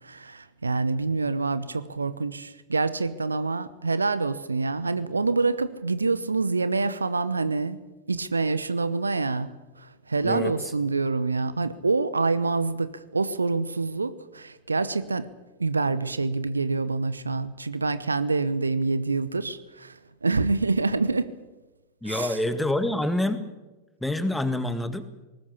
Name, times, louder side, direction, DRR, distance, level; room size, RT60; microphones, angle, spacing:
voice 1, 0.0-7.8 8.1-15.3 15.6-21.4 22.0-22.4, right 3 dB, 80° right, 15 dB, 0.9 m, -26 dB
voice 2, 10.2-10.5 22.0-23.5 24.0-25.1, left 1 dB, 5° left, 11 dB, 1.9 m, -26 dB
20.0 x 19.0 x 8.5 m, 1.1 s
figure-of-eight pair, 90°, 0 cm